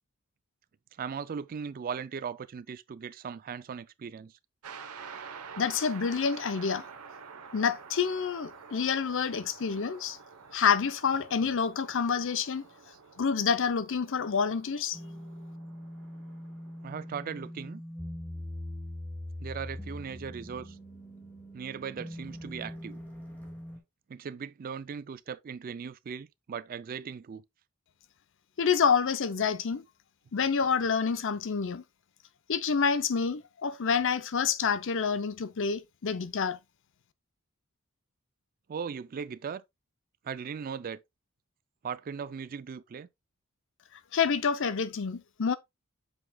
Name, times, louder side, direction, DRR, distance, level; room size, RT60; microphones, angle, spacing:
voice 1, 1.0-4.3 16.8-17.8 19.4-20.8 21.5-23.0 24.1-27.4 38.7-39.6 40.2-41.0 41.8-43.1, right 6 dB, 40° right, 0.3 m, -38 dB
sound 1, 4.6-17.2, right 6 dB, 90° right, 1.0 m, -49 dB
voice 2, 5.6-6.8 7.5-10.2 10.5-12.7 13.2-15.0 28.6-29.8 30.3-31.8 32.5-36.6 44.1-45.6, left 6 dB, 60° left, 0.6 m, -28 dB
sound 2, 14.9-23.8, left 1 dB, 5° left, 2.0 m, -42 dB
8.0 x 5.7 x 2.3 m
head